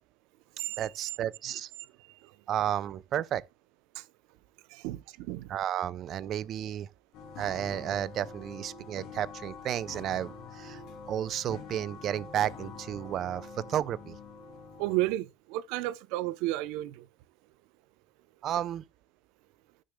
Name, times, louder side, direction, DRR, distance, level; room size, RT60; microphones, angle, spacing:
voice 1, 0.8-1.7 2.5-3.4 5.5-6.9 7.4-10.8 11.1-14.2 18.4-18.8, right 10 dB, 40° right, 0.4 m, -32 dB
voice 2, 4.7-5.5 14.8-17.1, right 17 dB, 80° right, 0.6 m, -33 dB
sound 1, 7.1-15.1, left 4 dB, 55° left, 2.6 m, -46 dB
13.5 x 6.4 x 2.2 m
cardioid pair, 160°, 0 cm